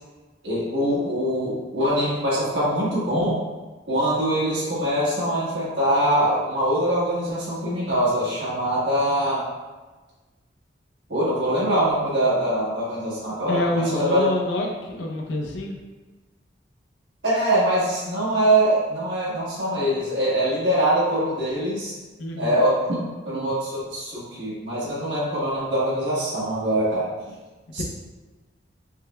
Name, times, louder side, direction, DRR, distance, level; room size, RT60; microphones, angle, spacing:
voice 1, 0.4-3.4 3.9-9.4 11.1-14.2 17.2-21.9 22.4-23.0 23.2-27.1 27.7-27.8, right 1 dB, 75° right, -8 dB, 1.4 m, -23 dB
voice 2, 13.5-15.8 22.2-22.6 27.8-27.9, left 1 dB, 70° left, 1 dB, 0.5 m, -27 dB
4.8 x 2.2 x 2.2 m, 1.3 s
head